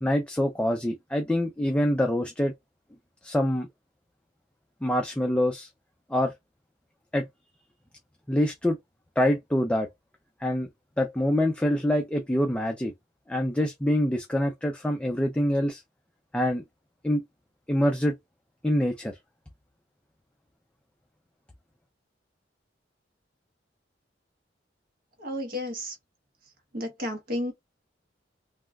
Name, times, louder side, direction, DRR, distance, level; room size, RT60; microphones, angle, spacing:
voice 1, 0.0-2.5 3.2-3.7 4.8-5.7 6.1-6.3 7.1-7.3 8.3-8.8 9.2-9.9 10.4-10.7 11.0-12.9 13.3-15.8 16.3-16.6 17.0-17.2 17.7-18.2 18.6-19.2, left 1 dB, 5° left, 0.4 m, -25 dB
voice 2, 25.2-26.0 26.7-27.5, left 1 dB, 50° right, 1.0 m, -32 dB
3.4 x 2.3 x 2.3 m
head